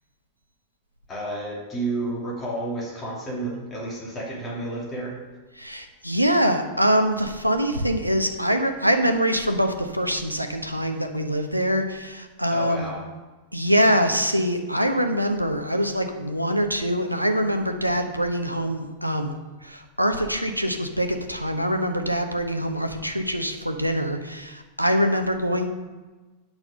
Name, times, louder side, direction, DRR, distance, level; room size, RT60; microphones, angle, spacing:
voice 1, 1.1-5.2 12.5-13.1, right 2 dB, 25° left, -4 dB, 2.9 m, -31 dB
voice 2, 5.6-12.9 13.5-19.3 19.6-25.7, equal, 90° right, 6 dB, 0.8 m, -24 dB
8.8 x 5.9 x 6.7 m, 1.2 s
figure-of-eight pair, 90°, 0 cm